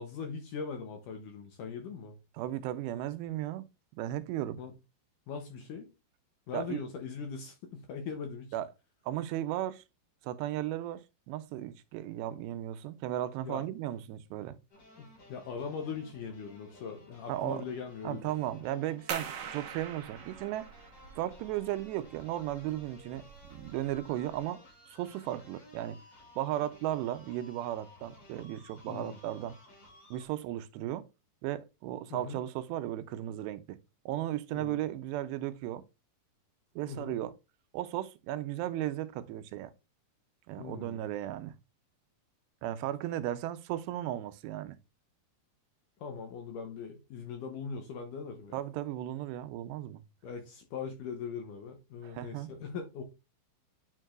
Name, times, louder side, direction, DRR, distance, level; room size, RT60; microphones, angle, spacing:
voice 1, 0.0-2.2 4.6-4.7 5.3-5.9 6.5-8.5 13.4-13.7 15.0-18.3 28.9-29.2 32.1-32.4 34.5-34.8 36.9-37.1 40.6-41.0 46.0-48.6 50.2-53.0, left 5 dB, 80° left, 1.9 m, -40 dB
voice 2, 2.4-3.7 4.0-4.6 6.5-6.8 8.5-8.7 9.1-9.8 10.2-14.6 17.3-17.6 18.0-20.7 21.2-23.2 23.5-24.6 24.9-26.0 26.4-29.6 30.1-31.1 31.4-33.8 34.1-35.8 36.8-37.4 37.7-39.7 40.5-41.6 42.6-44.8 48.5-50.0 52.0-52.5, right 13 dB, 85° right, 2.8 m, -35 dB
sound 1, 14.7-30.3, left 1 dB, 40° left, 3.0 m, -57 dB
sound 2, 19.1-24.4, right 7 dB, 65° right, 2.3 m, -44 dB
9.8 x 4.6 x 2.4 m
omnidirectional pair, 4.9 m